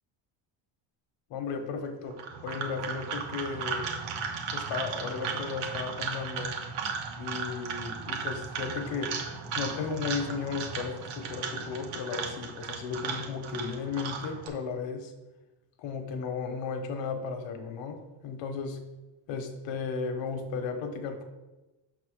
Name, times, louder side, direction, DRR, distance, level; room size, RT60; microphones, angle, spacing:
voice 1, 1.3-3.9 4.5-6.6 7.2-9.3 9.5-15.1 15.8-18.8 19.3-21.2, left 5 dB, 70° left, 6 dB, 1.1 m, -35 dB
sound 1, 2.1-14.5, right 5 dB, 80° right, 1.2 m, -36 dB
6.0 x 4.2 x 6.4 m, 1.1 s
cardioid pair, 175°, 47 cm